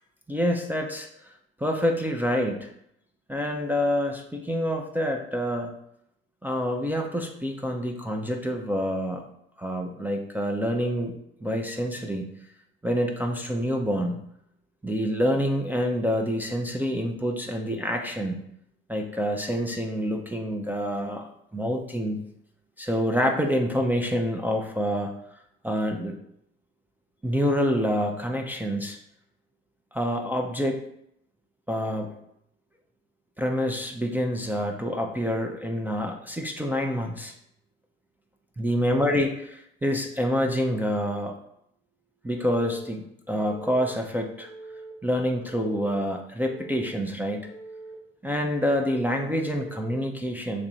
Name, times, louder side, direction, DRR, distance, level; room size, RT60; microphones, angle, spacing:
voice 1, 0.3-1.1 1.6-2.7 3.3-5.7 6.4-9.2 9.6-11.1 11.4-12.3 12.8-14.2 14.8-18.4 18.9-22.2 22.8-25.1 25.6-26.2 27.2-29.0 29.9-30.8 31.7-32.2 33.4-37.3 38.6-41.3 42.2-44.5 45.0-47.5 48.2-50.7, equal, 5° right, 1 dB, 0.4 m, -27 dB
Telephone, 42.4-42.9 43.4-43.9 44.4-44.9 45.4-45.9 46.4-46.9 47.4-47.9 48.4-48.9 49.4-50.0, right 3 dB, 80° right, 1.2 m, -43 dB
2.9 x 2.5 x 4.2 m, 0.75 s
hypercardioid pair, 70°, 30 cm